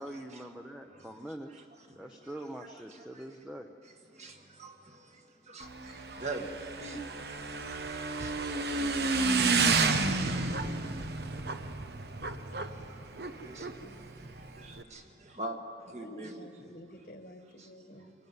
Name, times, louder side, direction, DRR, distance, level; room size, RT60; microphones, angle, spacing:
voice 1, 0.0-1.7 2.0-3.7, right 1 dB, 5° right, 3 dB, 0.7 m, -44 dB
voice 2, 4.1-6.5 6.8-9.3 12.5-15.6 15.9-16.3 17.6-18.1, right 2 dB, 40° right, 3 dB, 1.8 m, -45 dB
Motorcycle / Engine, 5.6-14.8, right 3 dB, 65° right, 1.1 m, -31 dB
voice 3, 13.4-14.1 15.6-18.1, equal, 55° left, 7 dB, 1.5 m, -50 dB
24.5 x 19.0 x 9.5 m, 2.6 s
head